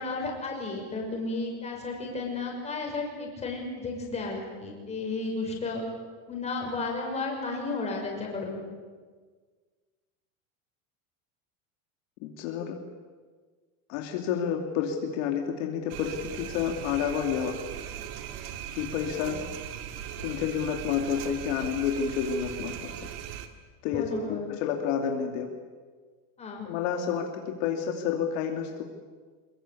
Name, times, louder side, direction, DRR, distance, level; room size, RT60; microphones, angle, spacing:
voice 1, 0.0-5.8 6.3-8.6 23.8-24.5 26.4-26.7, left 3 dB, 15° left, 0 dB, 5.7 m, -33 dB
voice 2, 12.2-12.8 13.9-17.6 18.7-19.4 20.2-23.1 23.8-25.5 26.6-28.8, left 7 dB, 60° left, 3 dB, 2.7 m, -30 dB
sound 1, 15.9-23.5, right 9 dB, 55° right, 2.2 m, -39 dB
24.0 x 22.0 x 8.5 m, 1.5 s
supercardioid pair, 165°, 42 cm